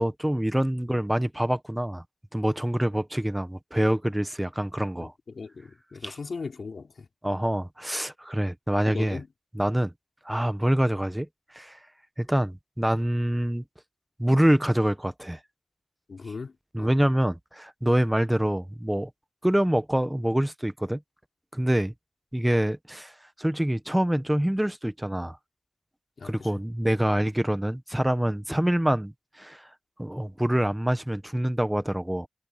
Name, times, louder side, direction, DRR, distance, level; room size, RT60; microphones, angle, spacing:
voice 1, 0.0-2.0 2.3-5.1 6.0-6.2 7.2-9.2 9.5-9.9 10.2-11.3 11.5-11.8 12.2-13.6 14.2-15.4 16.7-19.1 19.4-21.0 21.5-21.9 22.3-23.1 23.4-25.4 26.2-29.7 30.0-32.3, right 1 dB, 10° right, 1.4 m, -25 dB
voice 2, 5.0-7.1 8.9-9.3 16.1-17.0 26.2-26.6, left 4 dB, 75° left, 5.0 m, -38 dB
cardioid pair, 50°, 0 cm